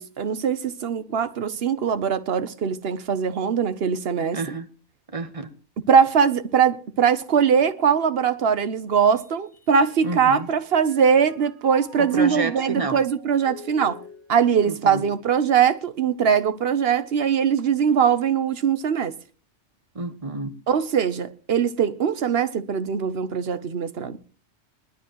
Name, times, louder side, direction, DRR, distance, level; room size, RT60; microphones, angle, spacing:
voice 1, 0.0-4.4 5.9-14.0 14.3-19.1 20.7-24.2, right 7 dB, 55° right, 1.1 m, -21 dB
voice 2, 4.3-4.7 5.1-5.5 10.0-10.5 12.0-13.0 14.6-15.1 19.9-20.6, right 3 dB, 30° right, 1.1 m, -29 dB
Mallet percussion, 9.5-10.5 10.8-16.2, left 1 dB, 5° left, 1.9 m, -47 dB
21.0 x 12.5 x 3.0 m
omnidirectional pair, 1.3 m